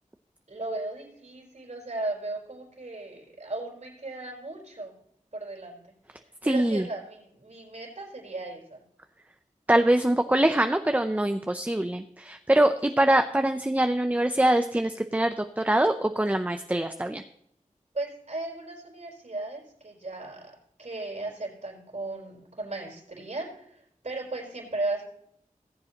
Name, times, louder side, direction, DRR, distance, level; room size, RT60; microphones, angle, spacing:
voice 1, 0.5-4.9 5.3-5.8 6.4-8.8 17.9-25.0, right 2 dB, 60° right, -2 dB, 4.2 m, -36 dB
voice 2, 6.4-6.9 9.7-17.2, right 1 dB, 10° right, 7 dB, 0.6 m, -24 dB
18.0 x 7.5 x 2.9 m, 0.70 s
wide cardioid pair, 55°, 14 cm